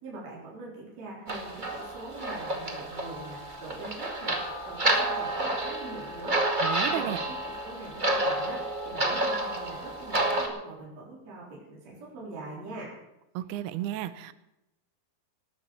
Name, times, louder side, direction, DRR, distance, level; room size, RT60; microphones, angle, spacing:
voice 1, 0.0-4.3 4.6-6.4 6.9-12.9, right 2 dB, 45° right, -4 dB, 5.0 m, -43 dB
sound 1, 1.3-10.5, right 1 dB, 25° right, 1.1 m, -30 dB
voice 2, 6.6-7.2 13.3-14.3, right 13 dB, 90° right, 14 dB, 2.8 m, -33 dB
19.0 x 9.2 x 7.0 m, 0.89 s
omnidirectional pair, 4.5 m